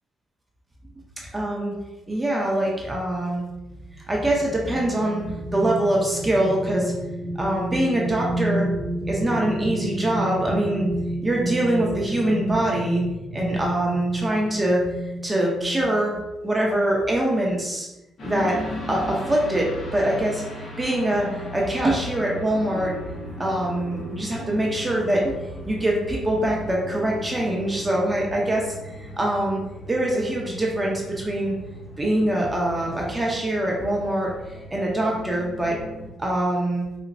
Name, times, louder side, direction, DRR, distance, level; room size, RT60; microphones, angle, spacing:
voice 1, 1.3-1.7 2.1-3.4 4.1-5.2 5.5-6.9 7.3-8.7 9.1-10.8 11.2-13.0 13.3-14.9 15.2-16.1 16.4-17.9 18.2-18.6 18.9-20.4 20.8-22.9 23.4-25.3 25.6-29.6 29.9-31.5 32.0-35.8 36.2-36.8, right 1 dB, 15° right, -2 dB, 0.7 m, -24 dB
sound 1, 3.5-16.3 16.7-16.9, right 1 dB, 50° right, 1.0 m, -31 dB
sound 2, 18.2-36.1, left 1 dB, 50° left, 0.9 m, -37 dB
4.0 x 2.1 x 2.6 m, 0.98 s
cardioid pair, 90°, 0 cm